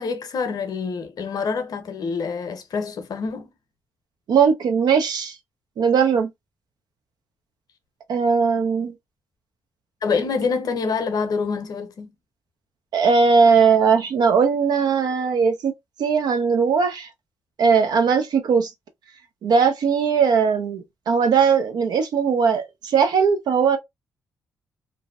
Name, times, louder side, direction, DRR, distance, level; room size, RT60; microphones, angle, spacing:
voice 1, 0.0-3.5 10.0-12.1, left 5 dB, 60° left, 0.7 m, -26 dB
voice 2, 4.3-5.3 5.8-6.3 8.1-8.9 12.9-15.7 16.0-17.1 17.6-18.7 19.4-23.8, right 6 dB, 70° right, 0.6 m, -19 dB
2.6 x 2.1 x 2.4 m
supercardioid pair, 50°, 7 cm